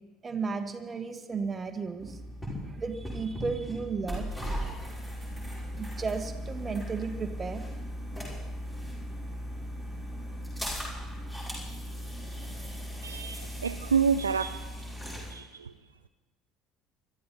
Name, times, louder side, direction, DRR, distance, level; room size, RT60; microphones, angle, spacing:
voice 1, 0.2-2.2 2.6-4.3 5.8-7.7, right 5 dB, 25° right, 7 dB, 1.5 m, -34 dB
sound 1, 2.0-15.3, equal, 10° left, 6.8 m, -38 dB
voice 2, 13.0-14.6 15.3-15.7, right 6 dB, 80° right, 11 dB, 0.4 m, -28 dB
23.5 x 13.0 x 4.3 m, 1.1 s
figure-of-eight pair, 60°, 0 cm